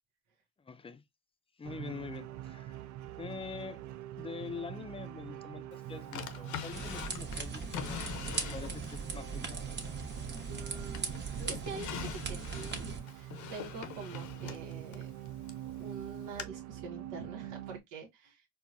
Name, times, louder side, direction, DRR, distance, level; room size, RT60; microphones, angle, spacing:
voice 1, 0.6-1.0 1.6-2.8 3.2-3.8 4.1-9.5, left 5 dB, 20° left, 0.4 m, -45 dB
sound 1, 1.6-17.8, right 13 dB, 70° right, 0.4 m, -45 dB
Drawer open or close, 6.1-9.0 9.5-10.6 10.9-15.7 16.4-16.5, left 9 dB, 70° left, 0.7 m, -43 dB
sound 2, 6.7-13.0, right 4 dB, 35° right, 1.0 m, -39 dB
voice 2, 10.5-15.1 15.6-18.5, right 4 dB, 85° right, 0.9 m, -46 dB
4.4 x 2.1 x 2.5 m
cardioid pair, 90°, 30 cm